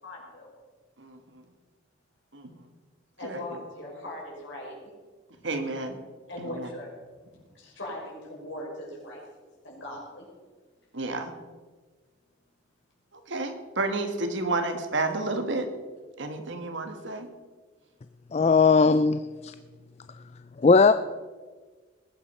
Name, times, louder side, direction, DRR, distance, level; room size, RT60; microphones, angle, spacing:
voice 1, 0.0-0.5 3.2-4.8 6.3-6.9 7.5-9.2 9.6-10.3 16.9-17.0, left 1 dB, 70° left, -3 dB, 6.0 m, -39 dB
voice 2, 1.0-1.4 2.3-2.5 3.2-3.6 5.4-6.0 6.4-6.7 10.9-11.3 13.3-15.7 16.2-17.3, right 2 dB, 70° right, 7 dB, 1.6 m, -31 dB
voice 3, 18.3-19.5 20.6-20.9, left 4 dB, 30° left, 12 dB, 0.3 m, -19 dB
20.5 x 9.0 x 5.5 m, 1.4 s
head